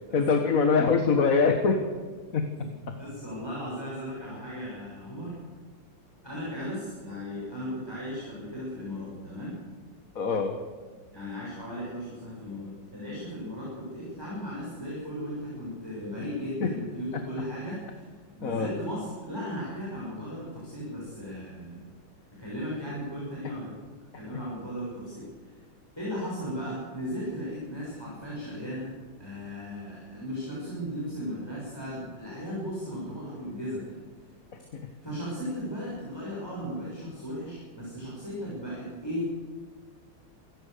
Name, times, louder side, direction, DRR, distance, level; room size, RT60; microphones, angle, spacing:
voice 1, 0.1-1.8 2.3-2.5 2.9-3.0 10.2-10.5 16.6-16.7 18.4-18.7 34.7-34.8, left 5 dB, 45° left, 6 dB, 1.8 m, -23 dB
voice 2, 3.0-5.4 6.2-9.6 11.1-21.9 22.4-23.8 24.1-25.6 26.0-34.0 35.0-39.3, equal, 10° left, -6 dB, 7.1 m, -36 dB
27.5 x 15.0 x 6.8 m, 1.5 s
omnidirectional pair, 2.1 m